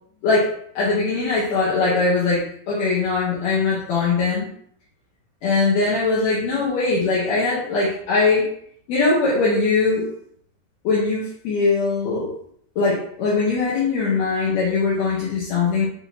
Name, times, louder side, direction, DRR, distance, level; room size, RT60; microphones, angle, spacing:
voice 1, 0.2-4.5 5.4-8.5 8.9-10.1 10.8-12.3 12.8-15.9, left 3 dB, 70° left, -6 dB, 1.8 m, -21 dB
5.9 x 2.7 x 2.8 m, 0.65 s
omnidirectional pair, 4.0 m